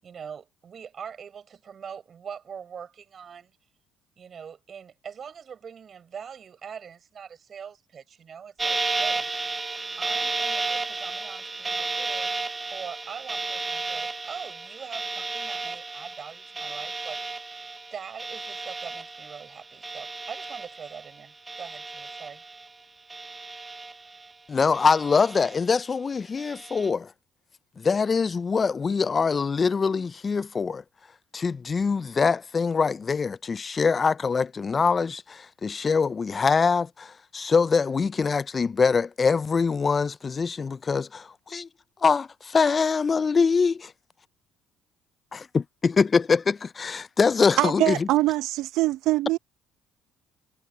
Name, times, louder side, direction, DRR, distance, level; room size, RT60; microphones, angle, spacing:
voice 1, 0.0-3.5 4.2-9.3 10.0-12.3 12.7-17.2 17.9-22.4, right 7 dB, 50° right, 7.6 m, -42 dB
sound 1, 8.6-21.2 21.5-22.7 23.1-24.3 24.7-25.8 26.4-26.9, right 3 dB, 25° right, 0.7 m, -33 dB
voice 2, 24.5-27.1 27.8-30.8 31.3-41.7 42.0-43.9 45.3-48.1, left 5 dB, 35° left, 0.7 m, -24 dB
voice 3, 47.6-49.4, right 17 dB, 70° right, 0.9 m, -23 dB
hypercardioid pair, 60°, 0 cm